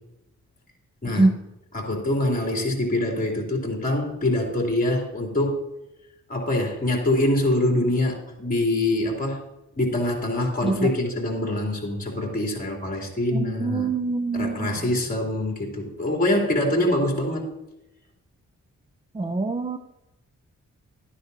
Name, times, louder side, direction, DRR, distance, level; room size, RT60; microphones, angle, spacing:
voice 1, 1.7-5.6 6.3-9.4 9.8-13.9 14.3-17.6, left 1 dB, 30° left, 0 dB, 3.0 m, -24 dB
voice 2, 13.3-14.8 19.1-19.8, right 3 dB, 20° right, 6 dB, 0.5 m, -24 dB
12.5 x 9.7 x 2.7 m, 0.93 s
wide cardioid pair, 105°, 29 cm